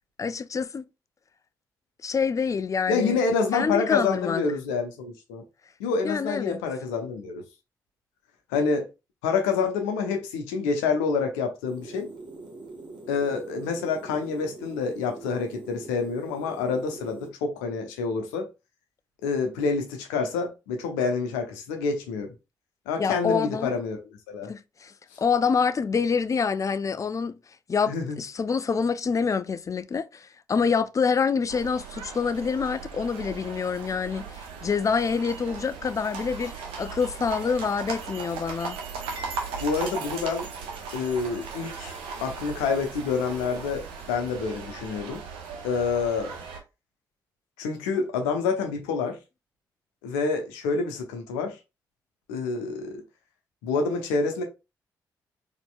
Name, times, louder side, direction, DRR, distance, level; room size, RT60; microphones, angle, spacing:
voice 1, 0.2-0.8 2.0-3.2 3.5-4.4 6.0-6.6 23.0-23.8 24.5-24.9 25.2-27.4 27.7-38.8, left 5 dB, 35° left, 0.4 m, -26 dB
voice 2, 2.9-5.4 5.8-7.4 8.5-8.9 9.2-12.1 13.1-18.5 19.2-22.3 22.9-24.0 24.3-24.5 27.9-28.2 39.6-40.5 40.9-41.9 42.2-45.2 45.6-46.4 47.6-49.2 50.0-51.6 52.3-53.0 53.6-54.4, left 5 dB, 85° left, 0.7 m, -27 dB
sound 1, 11.7-17.3, right 3 dB, 55° right, 1.3 m, -43 dB
sound 2, 31.5-46.6, right 5 dB, 75° right, 0.8 m, -38 dB
4.2 x 2.9 x 2.3 m
hypercardioid pair, 40°, 9 cm